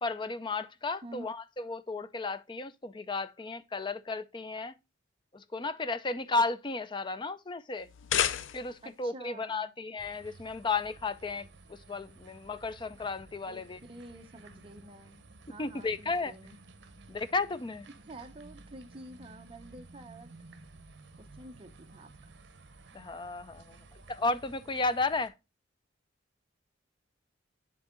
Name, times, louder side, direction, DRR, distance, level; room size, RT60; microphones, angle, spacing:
voice 1, 0.0-4.7 5.3-7.9 8.5-13.8 15.6-16.3 17.1-17.9 22.9-25.3, left 3 dB, 25° left, 0.4 m, -34 dB
sound 1, 7.8-8.9, left 9 dB, 80° left, 0.5 m, -31 dB
voice 2, 8.8-9.7 13.5-15.2 15.5-16.6 18.1-20.3 21.2-22.1, right 1 dB, 30° right, 0.8 m, -49 dB
sound 2, 10.0-25.3, right 3 dB, 65° right, 1.0 m, -54 dB
9.8 x 3.7 x 3.7 m
head